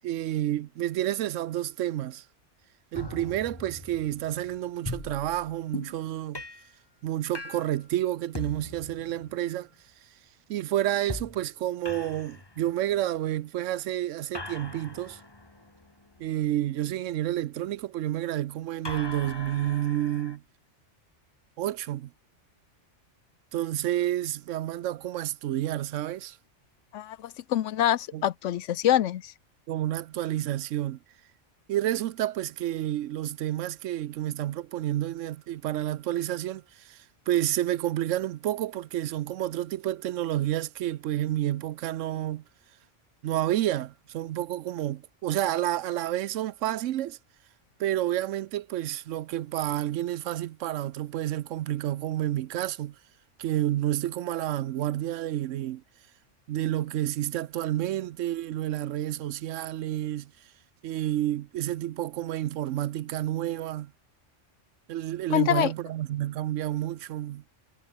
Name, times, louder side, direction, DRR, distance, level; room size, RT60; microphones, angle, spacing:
voice 1, 0.0-2.2 2.9-6.4 7.0-9.7 10.5-15.2 16.2-20.4 21.6-22.1 23.5-26.4 28.1-28.3 29.7-31.0 31.7-42.4 43.2-47.2 47.8-53.0 53.4-55.8 56.5-60.3 60.8-63.9 64.9-67.4, right 13 dB, 90° right, 1.0 m, -30 dB
sound 1, 2.9-6.0 6.3-6.7 7.3-7.8 8.3-9.6 11.1-11.5 11.9-13.0 14.3-16.7 18.8-20.4, left 2 dB, 20° left, 1.6 m, -41 dB
voice 2, 26.9-29.3 65.3-65.7, left 12 dB, 85° left, 1.0 m, -25 dB
omnidirectional pair, 1.2 m